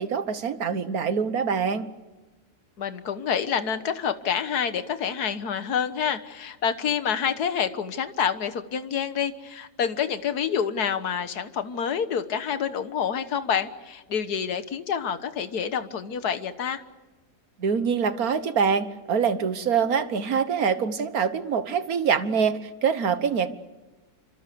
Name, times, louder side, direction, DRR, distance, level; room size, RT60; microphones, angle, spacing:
voice 1, 0.0-1.9 17.6-23.5, right 6 dB, 65° right, 11 dB, 1.7 m, -25 dB
voice 2, 2.8-16.8, left 7 dB, 80° left, 10 dB, 1.8 m, -28 dB
28.5 x 25.5 x 6.9 m, 1.2 s
omnidirectional pair, 1.7 m